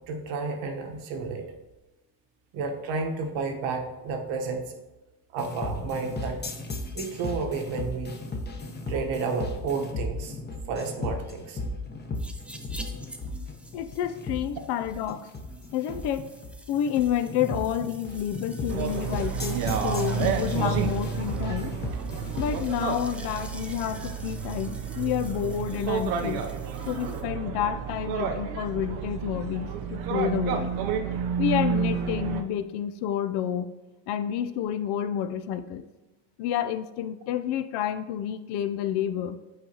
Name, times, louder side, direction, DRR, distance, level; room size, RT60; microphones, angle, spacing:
voice 1, 0.1-1.4 2.5-4.7 5.3-6.5 6.9-8.1 8.9-10.4 10.7-11.6 30.8-31.0, right 4 dB, 70° right, 4 dB, 1.2 m, -31 dB
sound 1, 5.4-22.7, left 2 dB, 20° left, 0.9 m, -35 dB
sound 2, 12.1-27.2, right 1 dB, 5° right, 0.4 m, -48 dB
voice 2, 13.7-15.3 15.7-16.3 16.7-21.8 22.4-26.4 26.9-30.7 31.4-33.7 34.1-35.8 36.4-39.4, left 10 dB, 60° left, 12 dB, 0.5 m, -29 dB
sound 3, 18.7-32.4, right 7 dB, 90° right, 0.8 m, -30 dB
8.1 x 4.7 x 2.8 m, 1.1 s
supercardioid pair, 105°, 47 cm